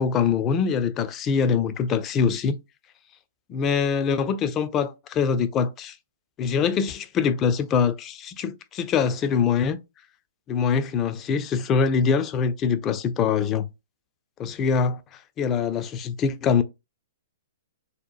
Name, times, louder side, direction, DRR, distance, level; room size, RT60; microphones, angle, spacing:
voice 1, 0.0-2.6 3.5-6.0 6.4-9.8 10.5-13.7 14.4-15.0 15.4-16.6, left 6 dB, 25° left, 0.3 m, -23 dB
2.8 x 2.1 x 2.3 m
hypercardioid pair, 120°, 0 cm